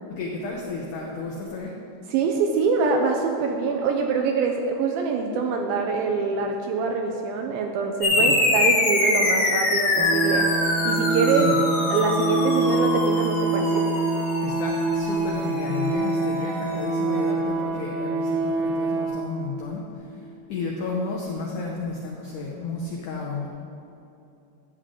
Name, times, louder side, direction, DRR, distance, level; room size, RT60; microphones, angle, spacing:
voice 1, 0.1-1.8 8.1-8.5 11.3-11.6 14.4-23.5, left 3 dB, 80° left, -1 dB, 1.8 m, -32 dB
voice 2, 2.1-10.5 10.8-11.5 11.9-13.8, right 5 dB, 85° right, 2 dB, 2.2 m, -24 dB
sound 1, 8.0-16.9, left 2 dB, 65° left, 2.9 m, -25 dB
sound 2, 10.0-19.1, right 3 dB, 65° right, 2.3 m, -25 dB
12.0 x 8.1 x 3.8 m, 2.7 s
omnidirectional pair, 4.7 m